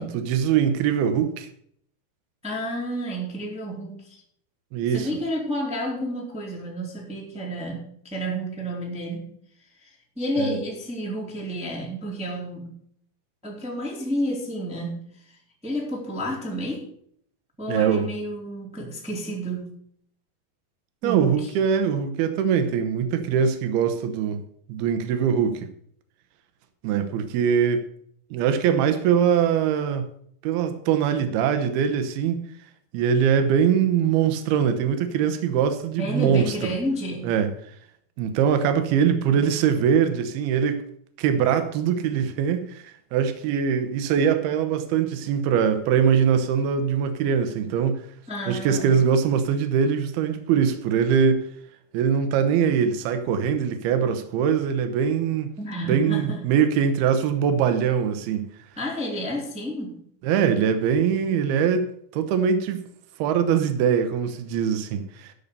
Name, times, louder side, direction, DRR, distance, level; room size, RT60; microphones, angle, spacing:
voice 1, 0.0-1.5 4.7-5.1 10.4-10.6 17.7-18.1 21.0-25.7 26.8-27.8 28.3-30.1 30.4-32.5 32.9-36.7 37.2-37.5 38.2-40.8 41.2-48.1 48.5-51.5 51.9-55.5 55.9-58.5 60.2-62.8 63.2-65.3, right 7 dB, 80° right, 3.0 m, -22 dB
voice 2, 2.4-4.2 4.9-9.3 9.8-9.9 10.1-12.7 13.4-15.1 15.6-16.9 17.6-19.7 21.0-21.5 36.0-37.3 48.3-48.9 55.6-56.4 58.7-60.0, equal, ahead, 1.7 m, -30 dB
12.5 x 5.7 x 6.7 m
omnidirectional pair, 4.5 m